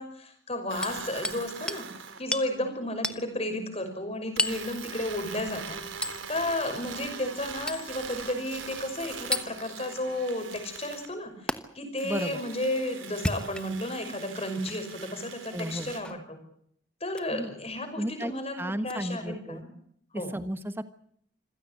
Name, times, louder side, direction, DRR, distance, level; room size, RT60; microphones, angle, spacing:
voice 1, 0.0-1.9 2.2-5.8 6.3-16.4 17.0-19.7 20.1-20.3, left 1 dB, 30° left, 7 dB, 5.8 m, -33 dB
sound 1, 0.7-2.3 4.4-11.1 12.0-16.0, right 6 dB, 80° right, 3.9 m, -42 dB
Hammer, 0.8-1.4 1.7-1.8 2.3-2.5 3.0-3.2 4.4-4.7 6.0-6.2 7.7-7.9 9.3-9.5 11.5-11.6 13.1-13.9 14.6-14.8 16.0-16.2 17.1-17.3 18.9-19.0, left 1 dB, 5° left, 1.1 m, -31 dB
voice 2, 12.0-12.4 15.5-15.9 17.3-17.5 18.0-18.3 18.6-19.6 20.1-20.9, equal, 10° right, 11 dB, 1.3 m, -33 dB
26.5 x 16.5 x 8.3 m, 0.66 s
head